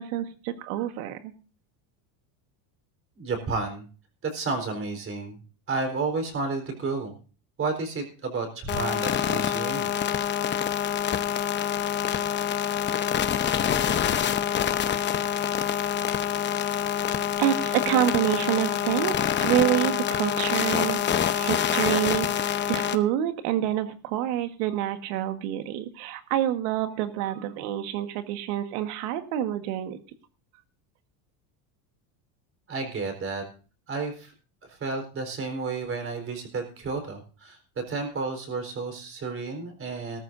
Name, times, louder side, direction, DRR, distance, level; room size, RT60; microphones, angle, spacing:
voice 1, 0.0-1.3 15.5-15.7 17.4-21.0 21.3-30.0, right 12 dB, 75° right, 8 dB, 1.7 m, -27 dB
voice 2, 3.2-3.9 4.2-5.4 5.7-7.1 7.6-9.9 32.7-33.4 33.9-34.3 34.6-37.6 37.9-40.2, right 3 dB, 25° right, 5 dB, 4.2 m, -31 dB
sound 1, 8.7-22.9, left 9 dB, 25° left, 0.8 m, -26 dB
17.5 x 14.0 x 2.6 m, 0.36 s
cardioid pair, 150°, 47 cm